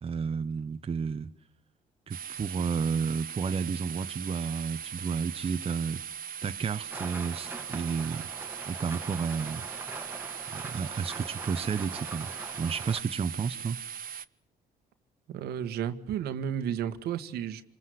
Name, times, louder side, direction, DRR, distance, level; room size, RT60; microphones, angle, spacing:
voice 1, 0.0-1.3 2.1-6.0 6.4-8.3 8.7-9.6 10.5-12.3 12.6-13.8, right 6 dB, 35° right, 1.2 m, -31 dB
sound 1, 2.1-14.2, right 8 dB, 60° right, 0.9 m, -40 dB
Rain, 6.9-13.0, right 2 dB, 15° right, 2.2 m, -42 dB
voice 2, 15.3-17.6, right 9 dB, 80° right, 1.8 m, -32 dB
27.5 x 21.0 x 7.9 m
cardioid pair, 85°, 16 cm